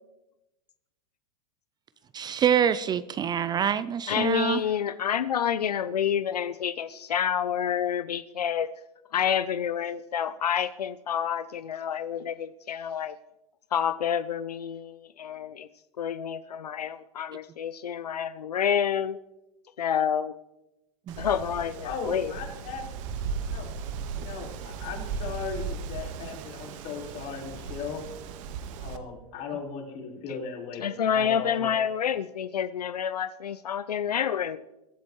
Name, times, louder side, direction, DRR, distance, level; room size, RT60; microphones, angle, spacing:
voice 1, 2.1-4.6 21.1-21.2, right 8 dB, 20° right, 15 dB, 0.4 m, -25 dB
voice 2, 4.1-8.7 9.1-13.2 13.7-15.7 16.0-19.2 19.8-20.3 21.2-22.3 30.3-30.4 30.8-34.6, left 8 dB, 90° left, 14 dB, 0.5 m, -28 dB
Wind, 21.1-29.0, right 6 dB, 55° right, 1.4 m, -36 dB
voice 3, 21.8-22.8 23.5-23.7 24.2-28.0 28.8-31.7, left 5 dB, 45° left, -1 dB, 4.4 m, -37 dB
22.5 x 11.0 x 3.1 m, 0.97 s
hypercardioid pair, 105°, 20 cm